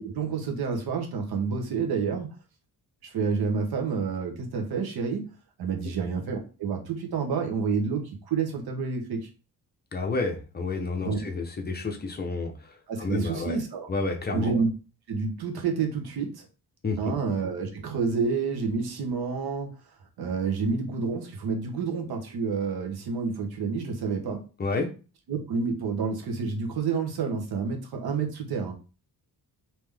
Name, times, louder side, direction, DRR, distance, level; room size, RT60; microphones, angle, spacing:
voice 1, 0.0-2.3 3.0-5.3 5.6-9.3 11.0-11.3 12.9-13.9 14.3-14.7 15.1-16.5 17.0-19.7 20.2-24.4 25.3-28.7, right 5 dB, 80° right, 3 dB, 1.0 m, -29 dB
voice 2, 9.9-12.7 13.0-13.6 13.9-14.6 16.8-17.1 24.6-24.9, left 3 dB, 25° left, 3 dB, 0.5 m, -30 dB
3.6 x 2.9 x 3.3 m, 0.34 s
wide cardioid pair, 180°, 37 cm